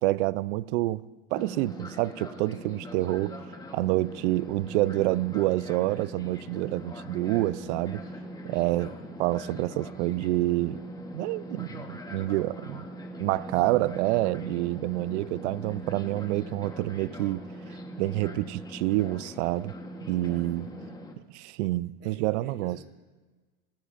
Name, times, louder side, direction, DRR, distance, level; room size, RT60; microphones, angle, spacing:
voice 1, 0.0-1.0 1.3-3.4 3.7-8.0 8.4-8.9 9.2-10.8 11.1-12.9 13.2-17.4 18.0-19.7 20.1-20.7 21.3-22.8, right 18 dB, 60° right, 0.5 m, -27 dB
Fixed-wing aircraft airplane, 1.4-21.1, equal, 10° left, 1.2 m, -41 dB
voice 2, 8.6-9.2 13.5-14.0 20.3-21.0 22.0-22.8, right 3 dB, 25° right, 3.1 m, -49 dB
21.5 x 15.0 x 2.5 m
supercardioid pair, 130°, 40 cm